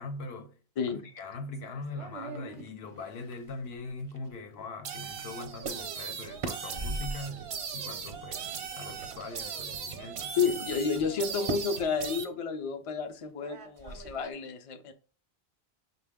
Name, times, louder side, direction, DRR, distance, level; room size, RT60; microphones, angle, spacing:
voice 1, 0.0-0.6 0.8-10.4, left 3 dB, 70° left, 0.8 m, -41 dB
sound 1, 1.5-4.4 5.2-5.3 5.6-5.8 6.1-7.3 8.5-9.4 10.2-10.3 11.4-11.8 13.4-14.3, right 3 dB, 45° right, 0.5 m, -40 dB
sound 2, 4.8-12.3, right 6 dB, 80° right, 0.9 m, -38 dB
voice 2, 10.4-14.9, left 5 dB, 45° left, 0.4 m, -31 dB
5.6 x 2.2 x 3.4 m
omnidirectional pair, 1.1 m